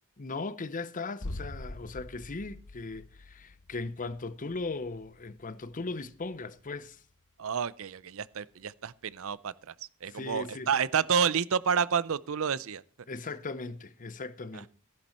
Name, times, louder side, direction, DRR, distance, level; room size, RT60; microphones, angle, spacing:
voice 1, 0.2-7.0 10.1-10.7 13.1-14.7, left 3 dB, 40° left, 0.7 m, -38 dB
sound 1, 1.2-6.9 7.2-7.3, left 1 dB, 85° left, 1.3 m, -45 dB
voice 2, 7.4-9.7 10.0-12.8, right 6 dB, 65° right, 0.6 m, -29 dB
15.0 x 11.0 x 4.3 m
head